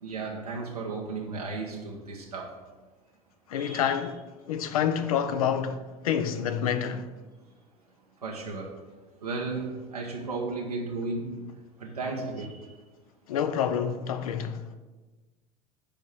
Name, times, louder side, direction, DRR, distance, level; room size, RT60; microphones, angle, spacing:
voice 1, 0.0-2.5 3.5-4.0 8.2-8.8 9.2-12.7, right 3 dB, 85° right, 1.0 m, -35 dB
voice 2, 3.5-4.2 4.5-7.1 13.3-14.6, left 8 dB, 65° left, 0.7 m, -28 dB
7.0 x 5.3 x 7.1 m
figure-of-eight pair, 70°, 19 cm